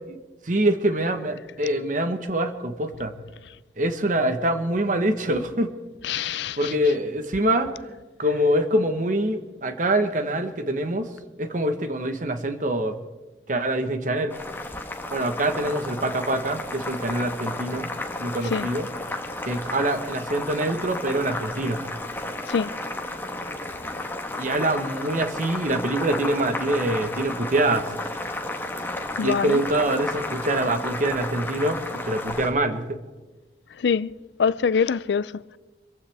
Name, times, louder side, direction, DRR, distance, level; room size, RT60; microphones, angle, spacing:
voice 1, 0.4-3.1 3.8-5.7 6.2-7.7 8.2-11.1 11.4-13.0 13.5-14.4 15.1-17.9 18.2-18.9 19.4-21.8 24.4-28.0 28.8-33.0, right 1 dB, 50° right, 1.2 m, -25 dB
voice 2, 6.0-6.7 18.5-18.7 22.5-22.7 29.2-29.6 33.8-34.1 34.4-35.3, left 6 dB, 75° left, 0.4 m, -24 dB
Boiling, 14.3-32.5, left 2 dB, 10° left, 1.4 m, -32 dB
25.0 x 15.0 x 3.5 m
head